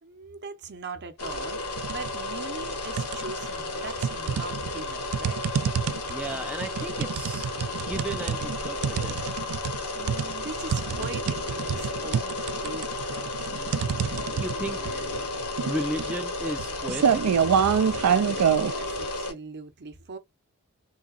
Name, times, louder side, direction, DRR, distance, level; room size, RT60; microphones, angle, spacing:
voice 1, 0.0-5.4 9.9-13.8 17.8-20.2, right 4 dB, 50° right, 0.8 m, -41 dB
sound 1, 1.2-19.3, left 2 dB, 80° left, 1.1 m, -33 dB
sound 2, 1.8-2.1 2.5-3.5 4.0-18.7, right 7 dB, 80° right, 0.4 m, -27 dB
voice 2, 6.1-7.5 7.7-9.3 14.3-15.1 15.6-17.2, right 1 dB, 5° right, 0.3 m, -35 dB
3.7 x 2.8 x 2.4 m
head